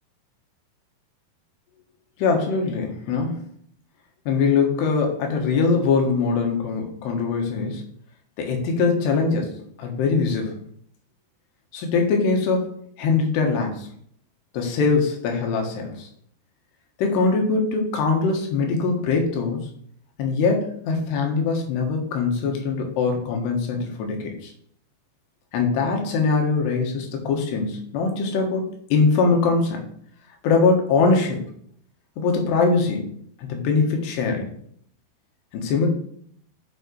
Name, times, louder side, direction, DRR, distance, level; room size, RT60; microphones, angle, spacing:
voice 1, 2.2-3.4 4.3-7.8 8.4-9.5 9.8-10.6 11.7-13.9 14.5-16.1 17.0-19.6 20.2-24.5 25.5-29.8 30.4-31.4 32.2-33.1 33.4-34.5 35.5-35.9, left 4 dB, 70° left, 2 dB, 3.2 m, -22 dB
8.1 x 5.8 x 3.2 m, 0.63 s
omnidirectional pair, 5.3 m